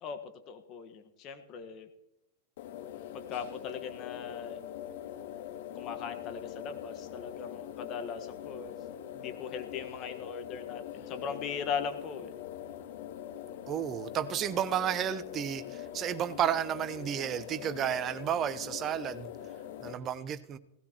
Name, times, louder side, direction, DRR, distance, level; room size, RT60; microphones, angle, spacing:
voice 1, 0.0-1.9 3.1-4.7 5.7-8.7 9.1-12.3, left 7 dB, 40° left, 7 dB, 1.4 m, -39 dB
sound 1, 2.6-19.9, left 10 dB, 60° left, 2.1 m, -43 dB
voice 2, 13.7-19.3 19.8-20.6, right 10 dB, 35° right, 13 dB, 0.9 m, -32 dB
18.0 x 16.5 x 3.0 m, 0.86 s
hypercardioid pair, 95°, 0 cm